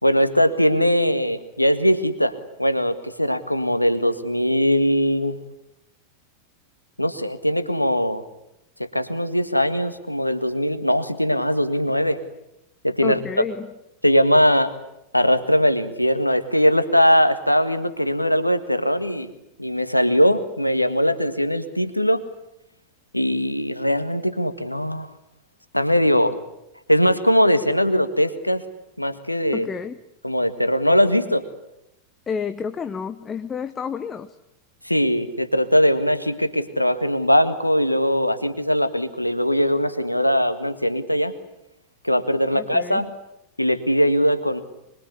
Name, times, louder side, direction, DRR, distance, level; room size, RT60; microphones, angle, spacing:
voice 1, 0.0-5.4 7.0-8.3 8.8-12.2 12.8-13.2 14.0-14.7 15.1-19.3 19.6-22.2 23.1-25.1 25.7-26.4 26.9-28.6 29.0-29.7 30.2-31.5 34.8-41.3 42.0-43.1 43.6-44.6, equal, 85° left, 12 dB, 1.7 m, -20 dB
voice 2, 13.0-13.7 29.5-30.0 32.3-34.4 42.5-43.0, left 6 dB, 20° left, 10 dB, 1.0 m, -30 dB
25.5 x 22.0 x 9.9 m, 0.84 s
figure-of-eight pair, 90°, 0 cm